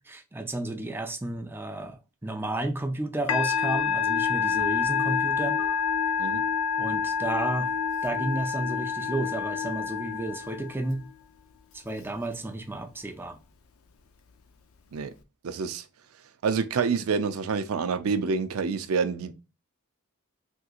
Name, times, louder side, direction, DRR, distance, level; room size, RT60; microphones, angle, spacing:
voice 1, 0.1-5.6 6.8-7.7 8.0-11.0 11.7-13.4, right 2 dB, 10° right, 0.4 m, -32 dB
Musical instrument, 3.3-10.9, left 6 dB, 85° left, 0.5 m, -27 dB
voice 2, 15.4-15.8 16.4-19.3, right 5 dB, 85° right, 0.4 m, -27 dB
3.5 x 2.9 x 2.4 m
head